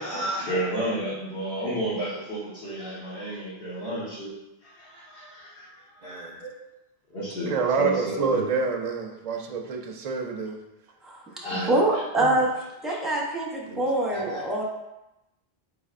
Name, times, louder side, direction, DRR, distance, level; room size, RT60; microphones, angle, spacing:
voice 1, 0.0-4.3 4.8-5.7 6.0-6.5 7.1-7.5 7.8-8.4 11.4-11.7 12.9-13.0 14.1-14.4, right 1 dB, 75° left, -10 dB, 1.3 m, -31 dB
voice 2, 6.0-6.4 7.5-10.6 11.4-11.7 12.2-12.3 13.7-13.8 14.2-14.4, right 5 dB, 55° right, 1 dB, 0.4 m, -28 dB
voice 3, 11.5-12.5 12.8-14.6, right 1 dB, ahead, -4 dB, 0.5 m, -25 dB
4.7 x 3.4 x 2.4 m, 0.94 s
omnidirectional pair, 1.0 m